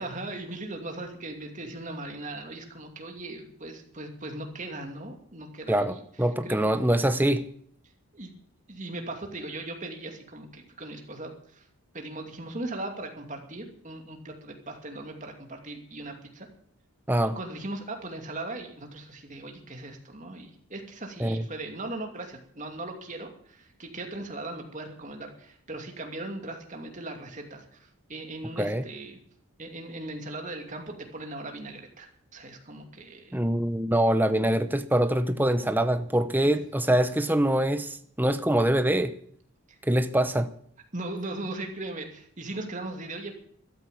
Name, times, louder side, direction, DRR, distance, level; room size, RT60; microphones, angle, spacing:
voice 1, 0.0-6.0 6.4-6.6 8.1-8.3 8.7-11.7 11.9-16.5 17.3-29.2 29.6-33.4 36.4-36.5 39.7-39.8 40.9-43.3, right 2 dB, 35° right, 2.6 m, -38 dB
voice 2, 5.7-7.5 17.1-17.4 21.2-21.5 28.6-28.8 33.3-39.1 39.8-40.5, right 1 dB, 10° right, 0.7 m, -24 dB
13.0 x 13.0 x 7.2 m
head